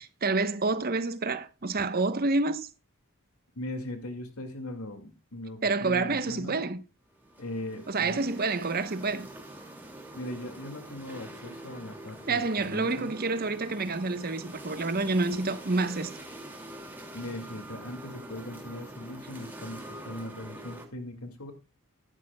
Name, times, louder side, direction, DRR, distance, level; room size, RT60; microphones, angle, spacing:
voice 1, 0.0-2.7 5.6-6.8 7.9-9.3 12.3-16.1, right 3 dB, 45° right, 1.0 m, -28 dB
voice 2, 3.6-6.6 7.4-8.3 10.1-13.2 17.1-21.5, left 1 dB, 85° left, 2.2 m, -39 dB
sound 1, 7.1-20.9, right 1 dB, 10° right, 2.4 m, -45 dB
15.0 x 11.0 x 2.3 m
head